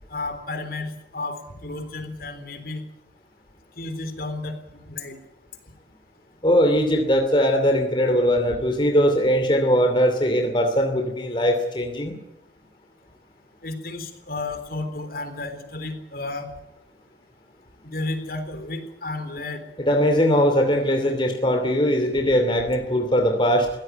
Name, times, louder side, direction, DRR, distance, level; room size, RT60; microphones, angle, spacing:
voice 1, 0.1-2.8 3.8-5.2 13.6-16.5 17.8-19.6, left 2 dB, 55° left, 8 dB, 3.7 m, -32 dB
voice 2, 6.4-12.2 19.8-23.7, equal, 25° left, 5 dB, 2.8 m, -20 dB
22.5 x 16.5 x 9.3 m, 0.91 s
head